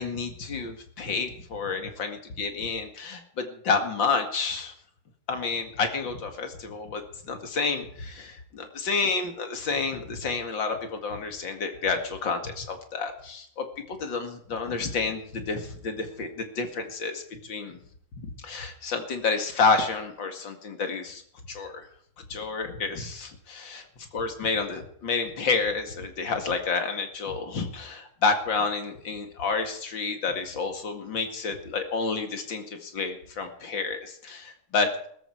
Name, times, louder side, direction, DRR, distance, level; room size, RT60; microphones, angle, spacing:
voice 1, 0.0-4.7 5.3-17.8 18.2-21.2 21.5-21.9 22.3-23.8 24.1-35.1, left 4 dB, 60° left, 5 dB, 2.8 m, -29 dB
16.5 x 14.0 x 4.7 m, 0.63 s
omnidirectional pair, 2.3 m